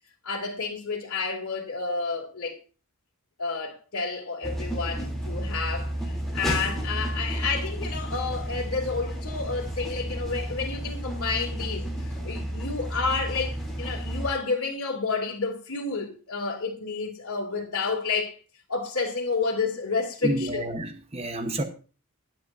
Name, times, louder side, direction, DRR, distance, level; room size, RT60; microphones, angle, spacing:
voice 1, 0.2-2.5 3.4-18.3 18.7-20.7, left 4 dB, 85° left, 2.6 m, -30 dB
sound 1, 4.4-14.3, right 1 dB, ahead, 3.0 m, -32 dB
voice 2, 20.2-21.6, right 1 dB, 30° right, 1.0 m, -29 dB
22.0 x 7.4 x 2.6 m
head